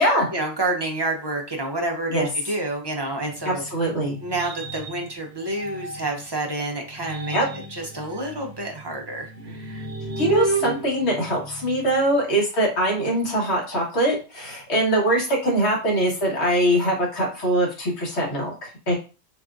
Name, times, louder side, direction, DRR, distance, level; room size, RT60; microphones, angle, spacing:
voice 1, 0.3-3.6 4.2-7.4 7.7-9.9, right 2 dB, 35° right, 1 dB, 0.4 m, -29 dB
sound 1, 3.2-6.3 6.8-12.0, right 2 dB, 70° right, 0.9 m, -33 dB
voice 2, 3.4-4.2 7.3-7.5 10.2-18.9, right 1 dB, 65° left, -2 dB, 1.5 m, -22 dB
4.1 x 2.3 x 2.5 m, 0.33 s
omnidirectional pair, 1.2 m